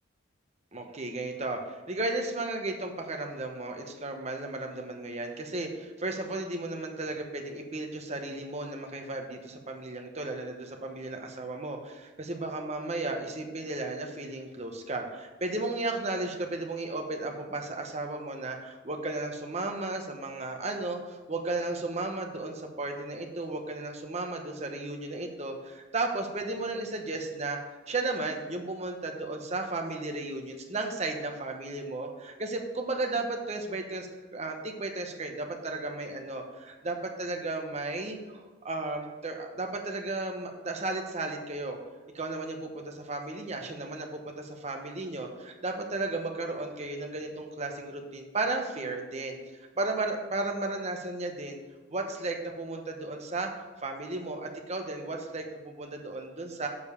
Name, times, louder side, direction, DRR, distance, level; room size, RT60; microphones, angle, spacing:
voice 1, 0.7-34.1 34.3-38.2 38.6-41.8 42.1-49.4 49.8-51.6 51.9-53.5 53.8-56.7, right 2 dB, 35° right, 3 dB, 1.0 m, -34 dB
6.8 x 5.3 x 6.7 m, 1.3 s
head